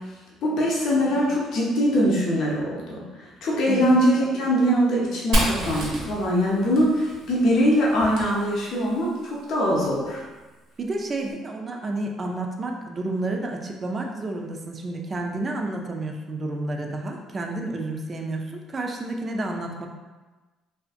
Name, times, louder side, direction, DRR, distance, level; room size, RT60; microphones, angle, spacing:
voice 1, 0.4-10.2, equal, 65° left, -4 dB, 0.6 m, -22 dB
Fire, 5.3-9.0, equal, 70° right, 0.8 m, -29 dB
voice 2, 10.8-19.9, right 2 dB, 40° right, 2 dB, 0.4 m, -30 dB
2.5 x 2.4 x 2.5 m, 1.2 s
supercardioid pair, 70°, 0 cm